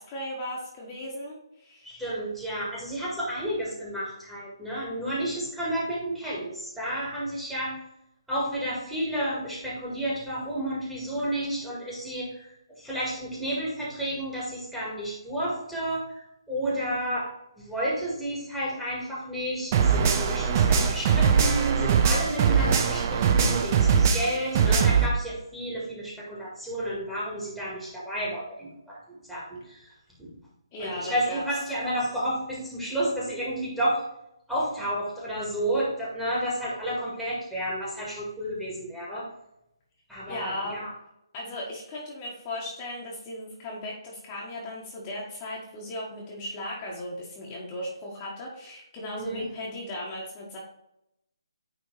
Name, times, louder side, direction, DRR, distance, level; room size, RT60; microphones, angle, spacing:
voice 1, 0.0-2.0 30.7-31.4 40.3-40.8 41.3-50.6, left 1 dB, 25° left, -4 dB, 1.4 m, -36 dB
voice 2, 1.8-7.8 8.3-12.5 12.8-17.3 17.6-29.9 30.2-30.3 30.8-34.1 34.5-39.3 40.1-40.9 49.1-49.5, right 1 dB, 5° right, -7 dB, 1.9 m, -31 dB
sound 1, 19.7-25.1, right 6 dB, 30° right, 0.7 m, -22 dB
9.3 x 3.5 x 3.3 m, 0.82 s
figure-of-eight pair, 145°, 3 cm